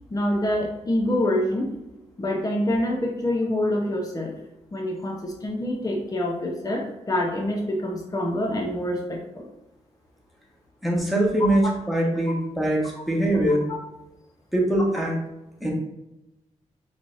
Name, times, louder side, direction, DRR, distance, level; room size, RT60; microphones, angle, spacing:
voice 1, 0.1-1.7 2.2-4.3 4.7-9.5 13.5-13.8, left 1 dB, 30° left, 1 dB, 0.8 m, -26 dB
voice 2, 10.8-13.6 14.5-15.1 15.6-15.7, right 1 dB, ahead, -2 dB, 1.5 m, -22 dB
5.0 x 3.3 x 2.6 m, 0.93 s
cardioid pair, 60°, 13 cm